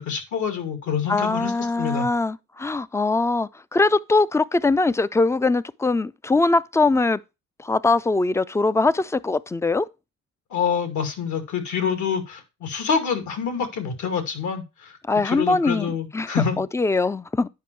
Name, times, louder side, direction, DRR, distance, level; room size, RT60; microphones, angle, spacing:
voice 1, 0.0-1.5 1.8-2.1 10.5-15.0 15.2-16.6, left 6 dB, 70° left, 2.1 m, -26 dB
voice 2, 1.1-7.2 7.6-9.9 15.1-16.3 16.6-17.5, left 3 dB, 10° left, 0.3 m, -22 dB
9.4 x 5.2 x 4.5 m
cardioid pair, 90°, 30 cm